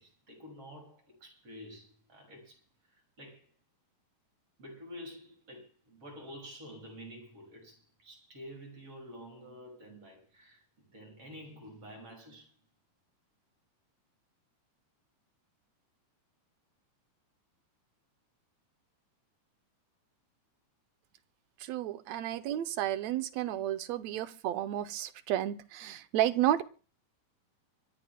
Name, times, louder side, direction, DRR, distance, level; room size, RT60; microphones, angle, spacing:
voice 1, 0.0-2.6 2.9-3.5 4.6-12.5, equal, 45° right, 6.8 m, -49 dB
voice 2, 21.6-26.6, right 12 dB, 75° right, 1.7 m, -32 dB
25.5 x 16.5 x 2.2 m
omnidirectional pair, 3.8 m